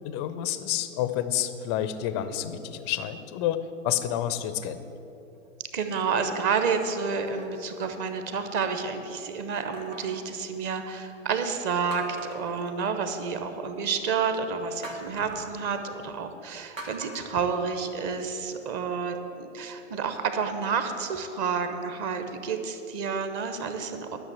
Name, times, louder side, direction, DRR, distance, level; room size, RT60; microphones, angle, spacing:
voice 1, 0.0-4.9, left 11 dB, 20° left, 12 dB, 0.4 m, -29 dB
sound 1, 4.2-4.7 5.4-5.5 7.1-8.6 9.7-11.1 11.5-11.6 11.9-13.4 14.8-15.6 16.8-18.3 18.8-18.9, right 1 dB, 75° right, 1.9 m, -45 dB
voice 2, 5.7-24.2, right 5 dB, 30° right, 7 dB, 0.9 m, -30 dB
11.5 x 6.4 x 7.8 m, 3.0 s
figure-of-eight pair, 100°, 39 cm